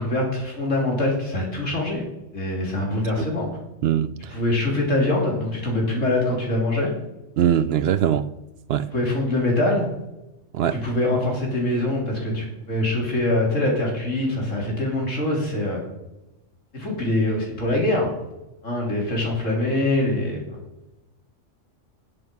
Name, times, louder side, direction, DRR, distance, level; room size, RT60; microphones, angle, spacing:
voice 1, 0.0-2.0 2.3-3.5 4.3-6.9 8.9-9.9 10.8-15.9 16.7-18.1 18.6-20.6, left 1 dB, 85° left, 3.6 m, -23 dB
voice 2, 3.8-4.3 7.4-8.3 8.7-8.9 10.5-10.8, right 9 dB, 65° right, 0.7 m, -21 dB
10.5 x 7.8 x 5.3 m
omnidirectional pair, 1.3 m